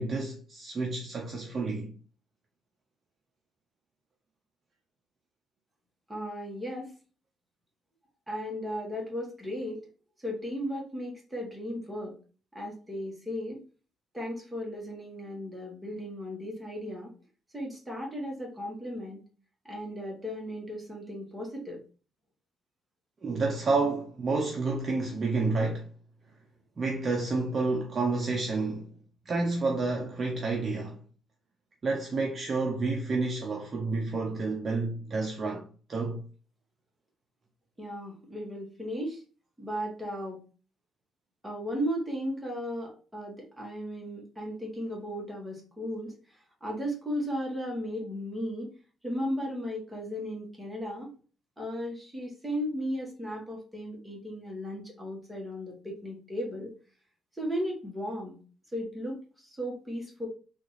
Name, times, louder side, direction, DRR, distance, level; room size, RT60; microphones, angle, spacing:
voice 1, 0.0-1.9 23.2-25.9 26.8-28.9 29.3-31.0 31.8-36.2, right 3 dB, 40° right, 0.6 m, -29 dB
voice 2, 6.1-6.9 8.3-9.8 10.2-12.1 12.5-13.6 14.1-17.1 17.5-19.2 19.6-21.8 37.8-39.2 39.6-40.4 41.4-46.1 46.6-48.7 49.0-51.1 51.6-56.7 57.4-58.4 58.7-60.3, equal, 10° right, 1.4 m, -35 dB
3.6 x 2.4 x 3.1 m
cardioid pair, 90°, 0 cm